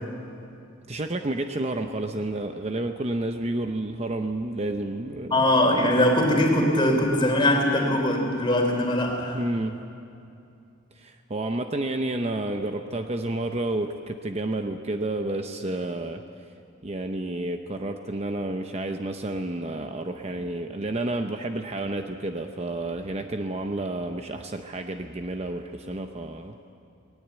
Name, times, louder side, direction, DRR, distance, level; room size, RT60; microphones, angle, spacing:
voice 1, 0.9-5.4 9.3-9.8 11.0-16.2 16.8-26.6, right 2 dB, 30° right, 6 dB, 0.7 m, -30 dB
voice 2, 5.3-9.4, left 1 dB, 25° left, 1 dB, 3.4 m, -21 dB
19.0 x 19.0 x 8.2 m, 2.6 s
head